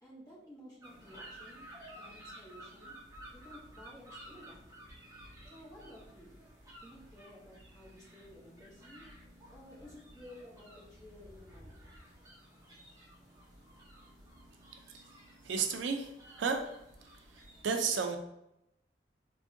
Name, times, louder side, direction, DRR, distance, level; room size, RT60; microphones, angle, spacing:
voice 1, 0.0-1.7 1.9-2.9 3.3-4.6 5.5-6.4 6.8-9.1 9.5-11.8, left 1 dB, 20° left, -7 dB, 1.0 m, -54 dB
sound 1, 0.8-17.6, right 1 dB, 20° right, 0.5 m, -54 dB
voice 2, 15.4-16.1 16.4-16.7 17.3-18.2, right 5 dB, 80° right, 5 dB, 0.4 m, -32 dB
3.4 x 2.2 x 2.6 m, 0.84 s
head